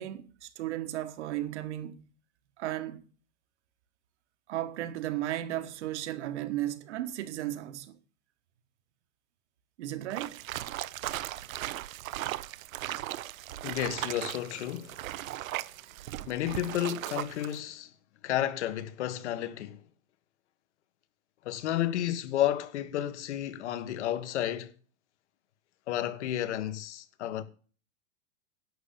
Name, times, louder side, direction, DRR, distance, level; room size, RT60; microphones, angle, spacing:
voice 1, 0.0-2.0 2.6-3.0 4.5-8.0 9.8-10.4, right 13 dB, 60° right, 1.3 m, -35 dB
sound 1, 10.1-17.6, right 14 dB, 80° right, 0.8 m, -37 dB
voice 2, 13.6-15.0 16.3-17.9 18.2-19.8 21.4-24.7 25.9-27.4, left 12 dB, 60° left, 1.5 m, -32 dB
11.5 x 7.1 x 6.8 m
supercardioid pair, 175°, 40 cm